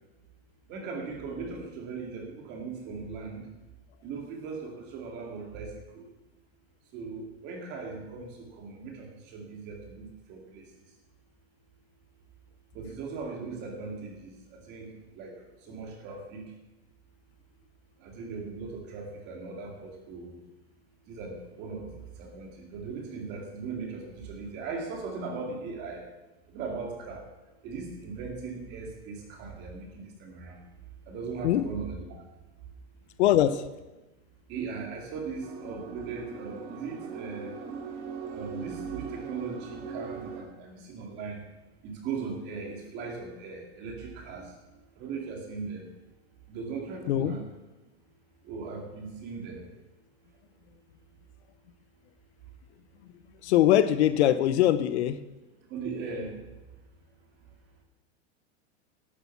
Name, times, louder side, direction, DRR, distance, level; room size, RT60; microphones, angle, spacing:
voice 1, 0.7-3.4 4.0-6.0 6.9-10.7 12.7-15.4 15.7-16.4 18.0-20.4 21.1-21.9 22.2-26.0 26.5-27.2 27.6-30.6 31.1-32.2 34.5-37.5 38.2-41.4 41.8-44.5 45.0-45.9 46.5-47.4 48.4-49.6 55.7-56.4, right 4 dB, 30° right, 2 dB, 2.5 m, -38 dB
voice 2, 33.2-33.6 47.1-47.3 53.4-55.2, left 12 dB, 70° left, 14 dB, 0.8 m, -22 dB
sound 1, 35.4-40.4, right 6 dB, 55° right, 2.5 m, -40 dB
12.0 x 8.2 x 7.1 m, 1.1 s
supercardioid pair, 175°, 35 cm